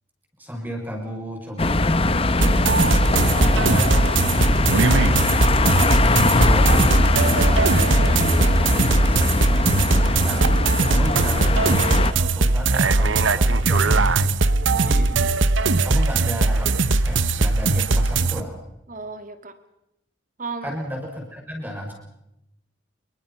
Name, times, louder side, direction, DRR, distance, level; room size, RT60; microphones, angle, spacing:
voice 1, 0.4-2.9 3.2-5.6 6.0-10.5 10.9-14.3 14.7-15.1 15.8-18.6 20.6-21.9, equal, 10° right, 1 dB, 6.5 m, -33 dB
sound 1, 1.6-12.1, left 2 dB, 30° left, 1.0 m, -21 dB
sound 2, 2.4-18.4, right 3 dB, 80° right, 1.1 m, -20 dB
voice 2, 3.2-3.6 14.7-15.3 18.9-19.6 20.4-20.7, right 3 dB, 40° right, 9 dB, 2.1 m, -35 dB
28.0 x 23.5 x 5.9 m, 0.86 s
head